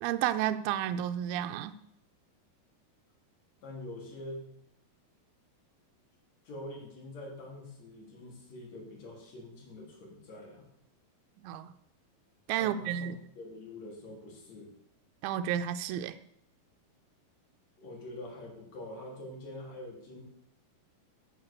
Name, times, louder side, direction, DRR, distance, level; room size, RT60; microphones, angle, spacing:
voice 1, 0.0-1.7 11.4-11.7 12.5-13.2 15.2-16.2, right 10 dB, 85° right, 10 dB, 2.5 m, -31 dB
voice 2, 3.6-4.4 6.4-10.7 12.6-13.1 13.4-14.7 17.8-20.2, left 1 dB, 50° left, -2 dB, 3.9 m, -45 dB
8.9 x 7.7 x 6.7 m, 0.75 s
omnidirectional pair, 4.4 m